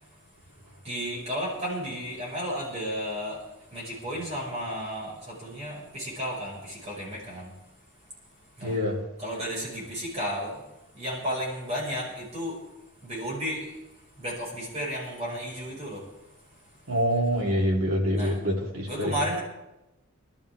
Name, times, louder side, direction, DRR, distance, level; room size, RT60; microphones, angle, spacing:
voice 1, 0.8-3.4 3.7-7.5 8.6-8.8 9.2-10.6 10.9-12.6 13.0-13.7 14.2-16.0 18.2-18.4 18.9-19.4, equal, 35° right, -5 dB, 5.5 m, -33 dB
voice 2, 8.6-9.0 16.9-19.2, equal, 80° right, -2 dB, 3.4 m, -26 dB
25.5 x 13.0 x 3.5 m, 0.96 s
head